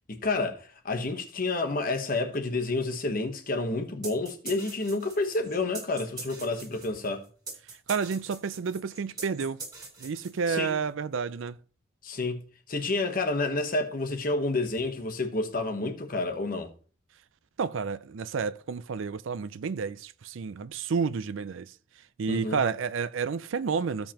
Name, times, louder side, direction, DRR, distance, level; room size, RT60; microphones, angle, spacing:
voice 1, 0.1-7.3 10.5-10.7 12.0-12.4 12.7-16.7 22.3-22.6, left 2 dB, 45° left, 1.1 m, -29 dB
sound 1, 4.0-10.7, right 4 dB, 20° right, 2.2 m, -43 dB
voice 2, 7.9-9.6 10.0-11.6 17.6-21.7 22.2-24.1, right 5 dB, 75° right, 0.4 m, -30 dB
15.0 x 5.2 x 2.9 m
head